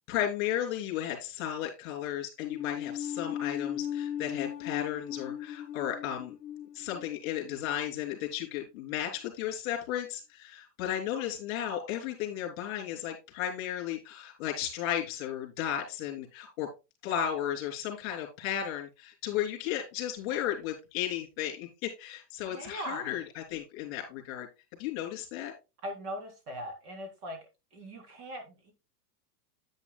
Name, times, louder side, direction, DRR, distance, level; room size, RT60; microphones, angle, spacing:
voice 1, 0.1-6.3 6.7-16.7 17.0-24.5 24.8-25.5, left 11 dB, 40° left, 1 dB, 3.1 m, -34 dB
sound 1, 2.4-8.8, left 10 dB, 10° left, 0.8 m, -38 dB
voice 2, 22.5-23.2 25.8-27.4 27.7-28.7, equal, 65° right, 4 dB, 3.7 m, -40 dB
9.7 x 8.9 x 2.2 m, 0.26 s
supercardioid pair, 175°, 49 cm